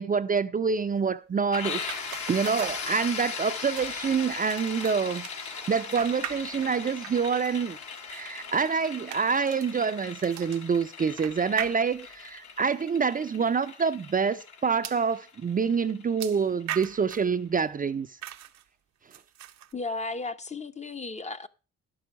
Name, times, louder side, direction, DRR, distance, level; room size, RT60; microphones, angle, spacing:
voice 1, 0.0-2.0 2.3-7.8 8.1-18.2, right 5 dB, 30° right, 0.5 m, -27 dB
sound 1, 1.5-17.1, left 5 dB, 75° left, 2.1 m, -39 dB
sound 2, 1.8-3.4 3.8-6.8 7.0-12.3 13.0-13.1 13.4-13.5 14.8-15.1 16.2-17.3 18.2-18.6 19.1-19.7, right 12 dB, 65° right, 0.7 m, -41 dB
voice 2, 19.7-21.5, left 3 dB, 25° left, 0.7 m, -34 dB
11.0 x 6.3 x 5.8 m
cardioid pair, 90°, 30 cm